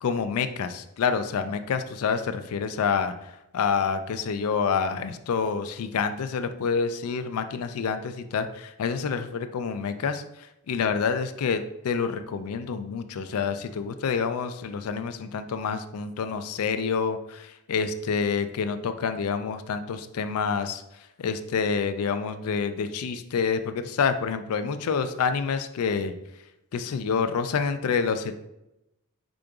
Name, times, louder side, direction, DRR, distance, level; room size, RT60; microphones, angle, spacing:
voice 1, 0.0-10.2 10.7-20.8 21.2-26.1 26.7-28.3, left 5 dB, 85° left, 10 dB, 0.4 m, -28 dB
5.0 x 3.8 x 2.3 m, 0.89 s
head